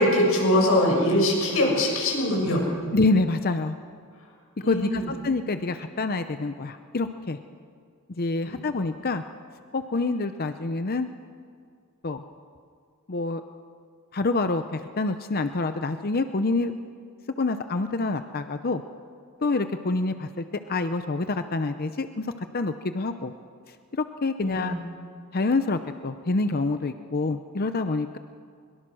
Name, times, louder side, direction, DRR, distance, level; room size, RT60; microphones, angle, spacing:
voice 1, 0.0-2.9 4.6-5.1 8.4-8.6 24.4-24.7, left 1 dB, 75° left, -1 dB, 6.9 m, -23 dB
voice 2, 2.9-3.8 4.7-7.4 8.2-9.2 9.7-11.1 12.0-12.2 13.1-13.4 14.1-16.7 17.4-18.8 19.4-22.3 22.5-23.3 24.0-24.7 25.3-28.2, left 3 dB, 45° left, 9 dB, 0.7 m, -26 dB
22.5 x 22.5 x 6.3 m, 2.2 s
head